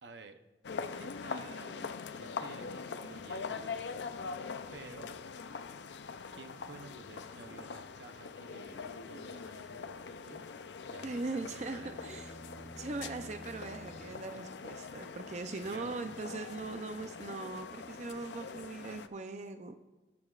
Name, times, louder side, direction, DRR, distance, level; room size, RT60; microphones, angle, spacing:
voice 1, 0.0-0.4 1.0-3.9 4.7-5.1 6.3-10.5 10.9-12.2 12.6-12.7 15.6-16.1 18.4-18.5, right 3 dB, 80° right, 8 dB, 0.8 m, -53 dB
sound 1, 0.6-19.1, left 5 dB, 80° left, 0.5 m, -43 dB
sound 2, 10.8-14.7, right 1 dB, 15° right, 3.5 m, -53 dB
voice 2, 11.0-12.3 12.8-19.8, right 3 dB, 40° right, 7 dB, 0.5 m, -40 dB
18.5 x 8.5 x 2.4 m, 1.1 s
head